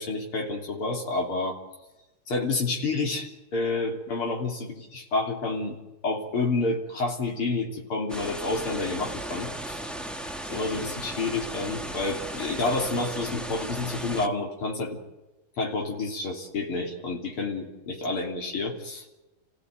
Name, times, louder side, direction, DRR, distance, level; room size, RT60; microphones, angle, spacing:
voice 1, 0.0-1.6 2.3-5.8 6.0-9.8 10.5-15.0 15.6-19.1, left 3 dB, 85° left, 0 dB, 4.3 m, -29 dB
sound 1, 8.1-14.3, right 1 dB, ahead, 1.0 m, -36 dB
29.0 x 16.5 x 9.4 m, 1.0 s
omnidirectional pair, 2.3 m